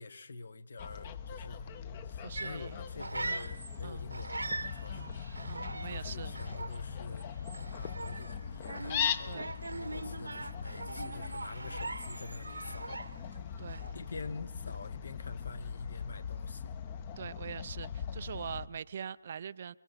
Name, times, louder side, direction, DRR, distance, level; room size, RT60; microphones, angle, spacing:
voice 1, 0.0-1.7 2.0-5.2 5.8-7.2 7.7-13.3 13.9-16.7, left 3 dB, 55° left, 1.5 m, -46 dB
Fowl, 0.8-18.7, left 7 dB, 25° left, 1.0 m, -40 dB
voice 2, 2.2-2.8 3.8-4.1 4.9-5.1 5.4-6.4 9.3-9.5 13.6-13.9 17.2-19.7, right 7 dB, 40° right, 0.6 m, -43 dB
sound 1, 2.3-3.8 4.1-13.4 13.7-14.1, right 2 dB, 75° right, 1.3 m, -41 dB
29.0 x 21.5 x 4.2 m
figure-of-eight pair, 150°, 0 cm